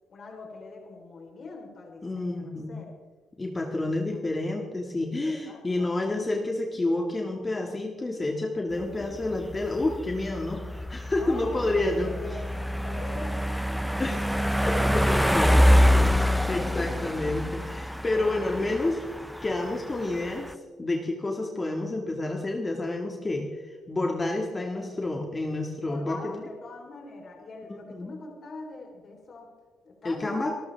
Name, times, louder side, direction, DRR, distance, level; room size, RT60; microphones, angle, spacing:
voice 1, 0.1-2.9 4.1-4.2 5.2-5.9 8.7-9.4 11.1-12.5 12.8-14.0 16.6-17.1 18.1-19.0 24.7-24.9 25.8-29.5 29.8-30.4, left 3 dB, 50° left, 0 dB, 4.0 m, -43 dB
voice 2, 2.0-2.8 3.4-12.1 14.0-15.6 16.1-19.0 19.4-20.5 20.8-26.3 27.9-28.1 30.0-30.5, left 2 dB, 25° left, 1 dB, 2.0 m, -29 dB
sound 1, 8.8-20.5, equal, ahead, 0.6 m, -26 dB
26.5 x 13.5 x 3.5 m, 1.4 s
cardioid pair, 90°, 0 cm